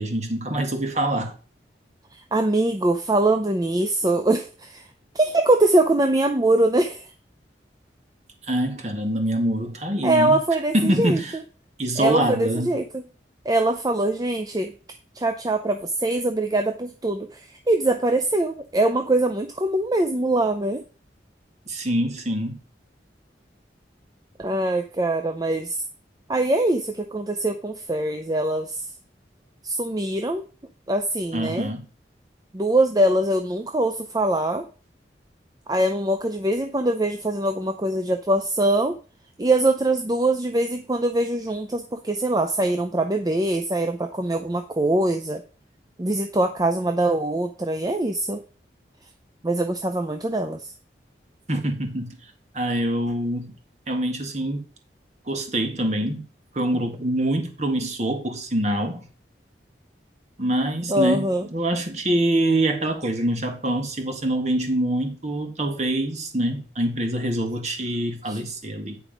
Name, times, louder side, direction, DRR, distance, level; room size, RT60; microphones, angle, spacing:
voice 1, 0.0-1.3 8.5-10.4 10.7-11.4 11.8-12.8 21.7-22.6 31.3-31.9 51.5-52.2 52.5-53.5 53.9-54.6 55.3-56.2 56.5-59.1 60.4-69.0, right 1 dB, 40° right, 1.7 m, -25 dB
voice 2, 2.1-4.9 5.1-7.1 10.0-11.2 12.0-13.1 13.5-14.7 15.2-20.8 24.4-25.8 26.3-28.8 29.6-30.5 30.9-31.7 32.5-34.7 35.7-39.0 39.4-45.4 46.0-48.4 49.4-50.7 60.9-61.5 68.3-68.4, right 2 dB, 20° right, 0.5 m, -23 dB
9.0 x 4.7 x 5.1 m
head